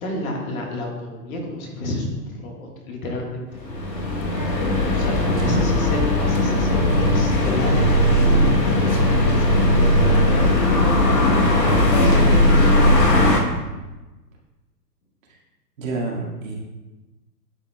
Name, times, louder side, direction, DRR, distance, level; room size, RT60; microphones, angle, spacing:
voice 1, 0.0-3.6 4.9-8.3 8.6-13.3, left 1 dB, 60° left, 0 dB, 1.6 m, -31 dB
sound 1, 3.6-13.4, left 1 dB, 90° left, 1.2 m, -18 dB
voice 2, 5.3-5.8 15.8-16.5, right 2 dB, 55° right, -2 dB, 1.8 m, -28 dB
10.5 x 4.1 x 2.2 m, 1.1 s
hypercardioid pair, 125°, 48 cm